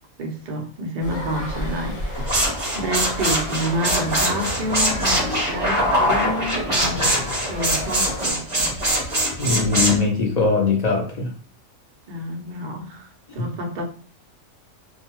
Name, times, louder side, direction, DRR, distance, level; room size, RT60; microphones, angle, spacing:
voice 1, 0.2-8.7 12.1-13.8, equal, 55° right, 0.5 m, -29 dB
sound 1, 1.0-8.3, left 1 dB, 50° left, 1.1 m, -33 dB
sound 2, 2.1-10.0, right 1 dB, 25° right, 0.8 m, -22 dB
voice 2, 9.4-11.3 13.4-13.5, left 4 dB, 90° left, 0.3 m, -21 dB
2.4 x 2.1 x 2.9 m
omnidirectional pair, 1.4 m